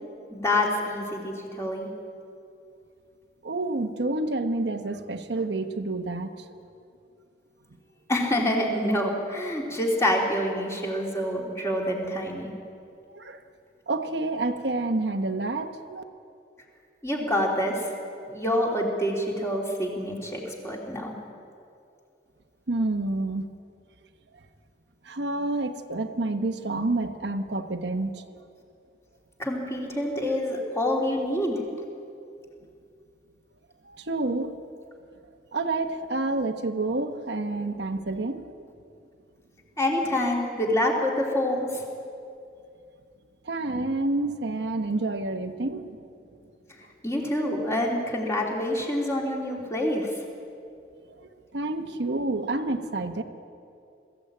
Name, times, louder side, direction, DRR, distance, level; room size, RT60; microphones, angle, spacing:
voice 1, 0.3-1.9 8.1-12.5 17.0-17.9 18.3-21.1 29.4-31.6 39.8-41.8 47.0-50.1, left 1 dB, 15° left, -2 dB, 3.2 m, -27 dB
voice 2, 3.4-6.5 13.1-13.4 13.9-16.0 22.7-23.5 25.0-28.3 30.5-30.6 33.8-34.6 35.5-38.7 43.4-46.0 51.2-53.2, right 2 dB, 70° right, 6 dB, 1.0 m, -29 dB
22.0 x 14.5 x 8.8 m, 2.5 s
head